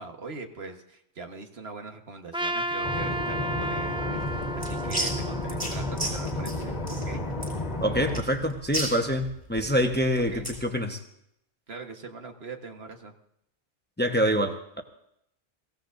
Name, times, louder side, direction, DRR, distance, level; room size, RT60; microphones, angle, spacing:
voice 1, 0.0-7.2 10.3-10.5 11.7-13.1, right 3 dB, 65° right, 4 dB, 1.6 m, -41 dB
Trumpet, 2.3-6.6, right 1 dB, 10° right, 0.3 m, -33 dB
sound 1, 2.8-8.2, left 1 dB, 35° left, 1.6 m, -32 dB
sound 2, 4.1-10.7, right 1 dB, 30° right, 5.0 m, -35 dB
voice 2, 7.8-11.0 14.0-14.8, equal, 10° left, 5 dB, 1.0 m, -26 dB
23.5 x 16.0 x 2.6 m, 0.76 s
omnidirectional pair, 1.1 m